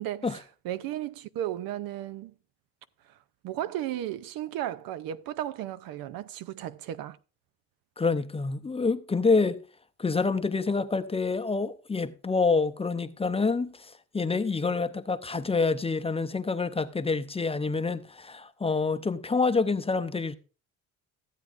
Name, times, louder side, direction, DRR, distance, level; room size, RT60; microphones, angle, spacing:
voice 1, 0.0-2.3 3.4-7.2, right 12 dB, 80° right, 0.6 m, -34 dB
voice 2, 8.0-9.6 10.0-20.4, left 4 dB, 15° left, 0.6 m, -27 dB
15.0 x 8.2 x 2.5 m
cardioid pair, 95°, 35 cm